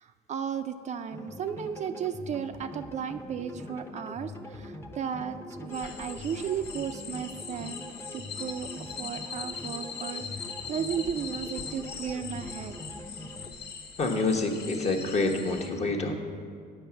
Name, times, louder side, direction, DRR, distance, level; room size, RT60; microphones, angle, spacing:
voice 1, 0.0-7.8 8.1-8.7 9.0-12.8, right 8 dB, 45° right, 8 dB, 0.4 m, -35 dB
sound 1, 1.1-13.5, left 1 dB, 15° left, 0.8 m, -43 dB
sound 2, 5.7-15.7, left 6 dB, 80° left, 1.5 m, -41 dB
voice 2, 14.0-16.2, left 3 dB, 40° left, 2 dB, 1.1 m, -27 dB
8.5 x 6.0 x 6.9 m, 2.2 s
cardioid pair, 110°, 17 cm